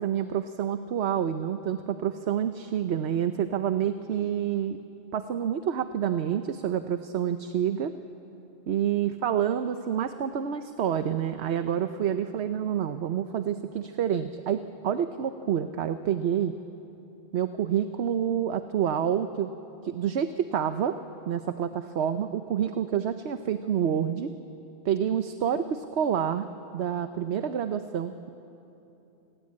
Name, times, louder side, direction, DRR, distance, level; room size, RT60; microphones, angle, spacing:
voice 1, 0.0-4.8 5.1-7.9 8.7-16.5 17.3-19.5 19.8-21.0 21.3-24.3 24.8-26.5 26.7-28.3, right 9 dB, 75° right, 9 dB, 1.0 m, -28 dB
28.5 x 20.0 x 8.6 m, 2.9 s
omnidirectional pair, 1.1 m